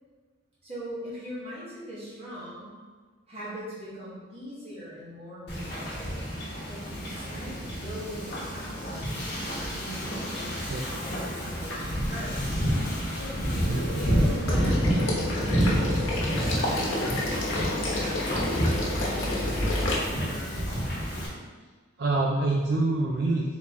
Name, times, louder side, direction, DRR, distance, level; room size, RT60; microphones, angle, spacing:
voice 1, 0.6-2.7 3.3-6.3 6.6-9.1 9.7-12.4 13.1-19.9 20.1-20.8, equal, 30° right, -8 dB, 1.3 m, -41 dB
Wind / Ocean, 5.5-21.3, equal, 50° left, 1.0 m, -29 dB
sound 1, 13.5-18.5, left 1 dB, 15° left, 1.4 m, -40 dB
voice 2, 13.7-14.0 22.0-23.6, right 2 dB, 55° right, -2 dB, 0.4 m, -26 dB
Water / Liquid, 14.4-19.9, left 1 dB, 75° left, 1.0 m, -30 dB
4.1 x 3.1 x 3.5 m, 1.4 s
head